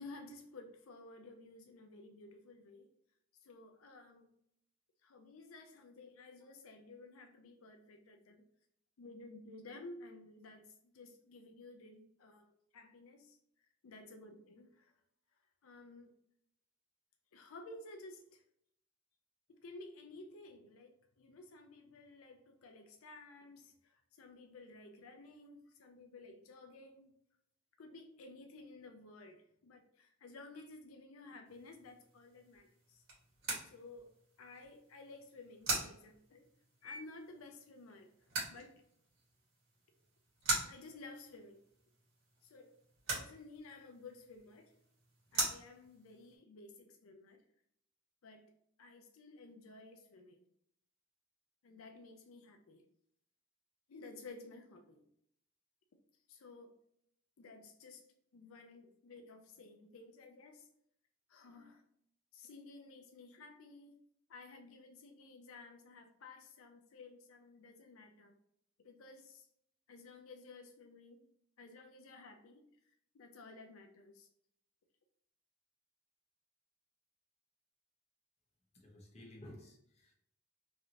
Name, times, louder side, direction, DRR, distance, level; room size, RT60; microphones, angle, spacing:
voice 1, 0.0-2.9 3.3-4.3 5.0-8.4 9.0-14.9 15.6-16.1 17.3-18.4 19.5-27.1 27.8-33.0 33.6-36.5 36.8-38.1 38.5-38.7 40.5-41.6 42.4-42.8 43.1-44.7 45.3-47.4 48.2-48.5 48.8-50.5 51.6-52.8 53.9-55.0 56.3-56.8 57.4-58.1 58.3-60.7 61.3-61.9 62.3-64.0 64.3-68.3 68.8-69.5 69.9-71.3 71.6-74.3, left 3 dB, 85° left, 5 dB, 0.5 m, -54 dB
sound 1, 31.5-46.3, right 2 dB, 80° right, 1.5 m, -43 dB
voice 2, 78.7-80.1, left 1 dB, 30° left, -1 dB, 0.9 m, -54 dB
3.1 x 2.7 x 2.8 m, 0.71 s
head